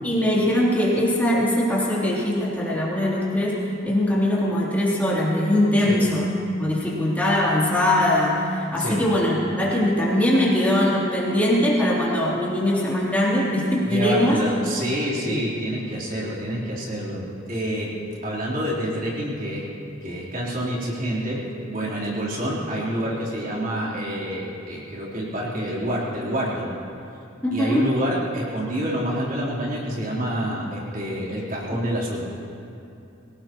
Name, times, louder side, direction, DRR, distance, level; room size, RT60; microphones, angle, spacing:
voice 1, 0.0-6.3 6.6-14.4 15.3-15.4 27.4-27.9, left 1 dB, 10° left, -7 dB, 3.4 m, -21 dB
voice 2, 13.9-17.9 18.2-19.7 20.0-21.4 21.7-26.7 27.5-32.5, equal, 45° right, -6 dB, 3.9 m, -27 dB
24.5 x 18.0 x 3.1 m, 2.7 s
head